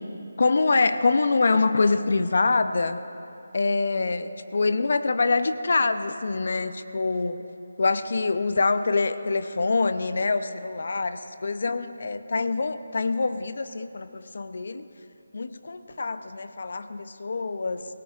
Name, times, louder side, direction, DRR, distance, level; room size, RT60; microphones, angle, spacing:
voice 1, 0.4-3.0 3.5-7.4 7.8-14.8 15.3-17.9, left 3 dB, 60° left, 11 dB, 0.6 m, -25 dB
25.5 x 17.5 x 2.4 m, 2.7 s
figure-of-eight pair, 165°, 0 cm